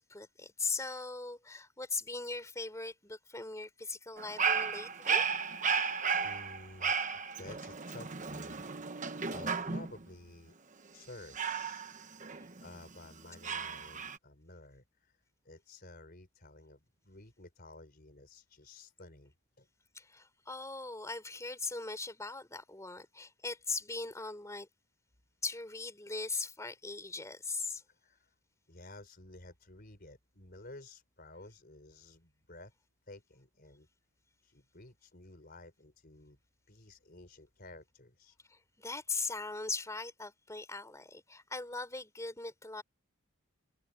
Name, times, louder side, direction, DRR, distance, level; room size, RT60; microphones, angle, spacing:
voice 1, 0.0-5.2 19.9-24.7 25.4-27.8 38.5-42.8, left 3 dB, 15° left, 3.5 m, -40 dB
Dog, 4.2-10.0 11.3-12.8 13.4-14.2, right 6 dB, 35° right, 1.1 m, -34 dB
voice 2, 6.2-10.5 10.9-11.8 12.6-19.7 27.9-28.3 28.7-32.7 33.1-33.9 34.4-36.4 36.7-38.4, left 2 dB, 45° left, 4.6 m, -53 dB
head